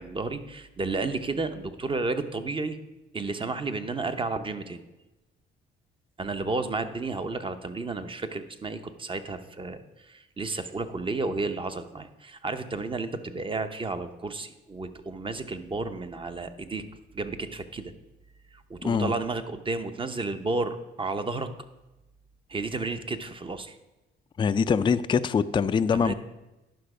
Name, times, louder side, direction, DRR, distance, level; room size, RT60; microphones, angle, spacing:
voice 1, 0.0-2.8 3.1-4.8 6.2-16.9 17.1-17.9 18.5-21.5 22.5-23.7 25.9-26.1, right 3 dB, 25° right, 9 dB, 0.8 m, -32 dB
voice 2, 18.8-19.1 24.4-26.1, left 6 dB, 25° left, 11 dB, 0.3 m, -23 dB
10.5 x 5.8 x 4.9 m, 1.0 s
cardioid pair, 90°, 20 cm